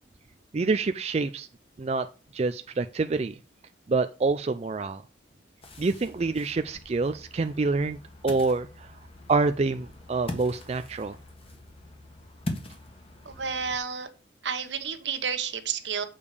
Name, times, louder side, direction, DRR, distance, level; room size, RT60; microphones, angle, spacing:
voice 1, 0.5-1.5 1.8-2.1 2.3-3.4 3.9-5.0 5.8-8.0 8.2-9.0 9.3-11.2, right 3 dB, 35° right, 9 dB, 0.4 m, -27 dB
Ocean, 5.6-13.8, left 1 dB, 30° left, 1.6 m, -42 dB
voice 2, 13.2-14.1 14.4-16.0, right 6 dB, 75° right, 8 dB, 1.2 m, -31 dB
7.1 x 5.2 x 6.6 m, 0.35 s
head